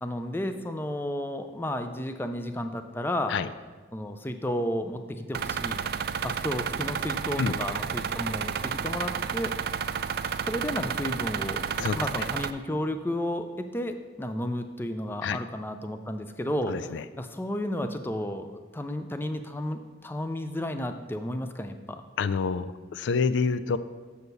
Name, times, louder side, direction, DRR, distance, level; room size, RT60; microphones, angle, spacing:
voice 1, 0.0-3.4 3.9-5.8 6.2-9.5 10.4-11.6 11.9-22.0, left 1 dB, 10° left, 8 dB, 0.4 m, -32 dB
sound 1, 5.3-12.5, right 7 dB, 55° right, 0.3 m, -31 dB
voice 2, 16.7-17.0 22.2-23.8, left 5 dB, 90° left, 14 dB, 0.3 m, -27 dB
6.8 x 6.4 x 5.4 m, 1.4 s
head